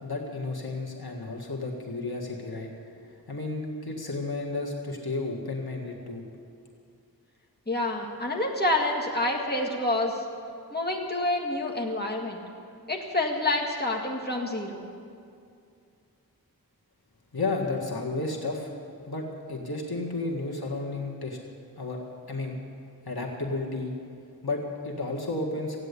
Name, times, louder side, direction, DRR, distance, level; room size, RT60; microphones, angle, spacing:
voice 1, 0.0-2.7 3.0-6.2 17.3-18.7 19.1-21.4 21.8-22.6 23.0-24.0 24.4-25.8, left 2 dB, 70° left, -1 dB, 1.8 m, -32 dB
voice 2, 7.7-10.2 10.7-12.4 12.9-14.9, left 2 dB, 25° left, -1 dB, 2.0 m, -28 dB
16.0 x 9.5 x 8.3 m, 2.4 s
wide cardioid pair, 55°, 38 cm